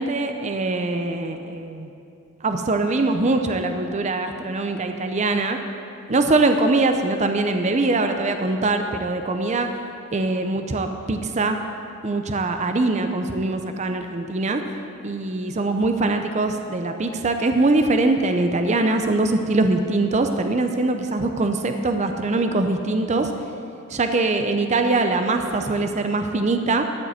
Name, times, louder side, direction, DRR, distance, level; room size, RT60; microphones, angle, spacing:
voice 1, 0.0-1.9 2.4-5.6 6.1-9.7 10.1-11.6 12.0-14.6 15.0-23.3 23.9-26.9, right 2 dB, 30° right, 6 dB, 0.5 m, -22 dB
13.0 x 5.2 x 8.1 m, 2.6 s
head